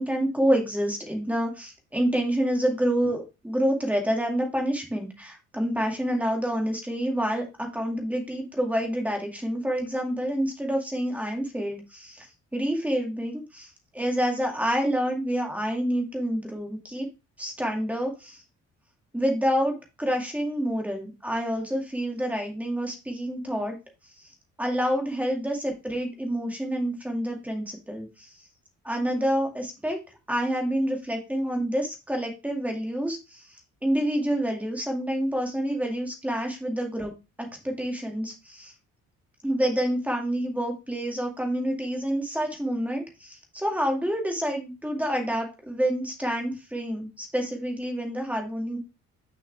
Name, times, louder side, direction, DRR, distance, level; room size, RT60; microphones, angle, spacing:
voice 1, 0.0-12.3 12.5-17.1 17.4-18.4 19.1-23.8 24.2-24.3 24.6-28.3 28.8-30.0 30.3-37.1 37.4-38.7 39.4-48.8, equal, 5° right, 2 dB, 2.2 m, -28 dB
6.6 x 5.5 x 3.3 m, 0.26 s
cardioid pair, 125°, 29 cm